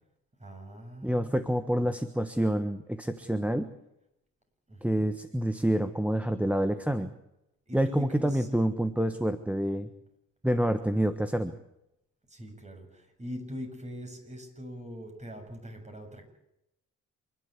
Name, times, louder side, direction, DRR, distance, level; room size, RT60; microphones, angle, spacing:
voice 1, 0.4-1.9 4.7-5.1 7.7-8.5 12.3-16.3, equal, 25° right, 4 dB, 7.2 m, -42 dB
voice 2, 1.0-3.7 4.8-7.1 7.7-9.9 10.4-11.6, right 1 dB, 5° right, 8 dB, 1.3 m, -27 dB
27.5 x 12.0 x 9.6 m, 0.84 s
cardioid pair, 90°, 30 cm